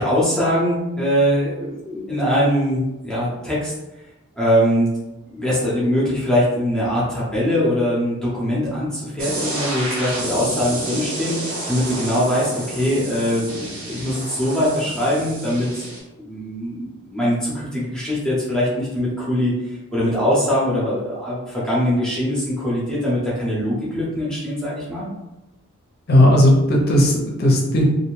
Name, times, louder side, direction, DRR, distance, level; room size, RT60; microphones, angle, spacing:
voice 1, 0.0-3.7 4.4-4.9 5.3-15.9 16.2-25.1, equal, 5° left, -8 dB, 0.6 m, -22 dB
sound 1, 9.2-16.0, right 2 dB, 75° right, 0.8 m, -30 dB
voice 2, 26.1-27.9, left 1 dB, 45° left, -1 dB, 0.5 m, -15 dB
2.5 x 2.1 x 3.1 m, 1.0 s
head